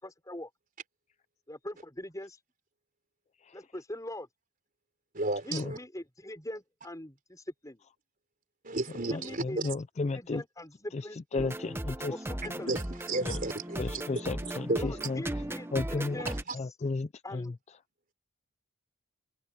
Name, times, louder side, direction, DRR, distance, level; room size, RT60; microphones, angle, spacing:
voice 1, 0.0-0.5 1.5-2.4 3.5-4.3 5.4-7.8 9.0-9.6 10.1-11.5 12.1-12.7 14.8-16.4 17.2-17.5, left 1 dB, 15° left, 5.8 m, -42 dB
voice 2, 5.1-5.8 8.6-9.7 12.7-15.1 16.3-16.6, right 2 dB, 40° right, 4.0 m, -34 dB
voice 3, 9.1-10.4 10.9-12.1 13.2-13.4 13.8-15.2 15.7-16.3 16.5-17.5, left 3 dB, 30° left, 0.4 m, -34 dB
sound 1, 11.4-16.4, right 1 dB, 10° right, 1.0 m, -37 dB
open air
head